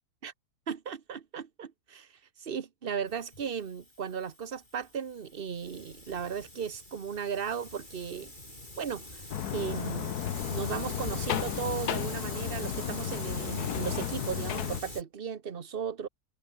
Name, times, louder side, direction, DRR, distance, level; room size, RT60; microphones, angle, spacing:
voice 1, 0.7-2.1 2.4-8.3 8.8-9.3 9.5-10.2 10.5-16.1, right 7 dB, 35° right, 1.2 m, -36 dB
Hiss, 3.1-15.0, left 1 dB, 25° left, 7.0 m, -44 dB
sound 1, 9.3-14.8, left 10 dB, 70° left, 1.5 m, -33 dB
omnidirectional pair, 1.8 m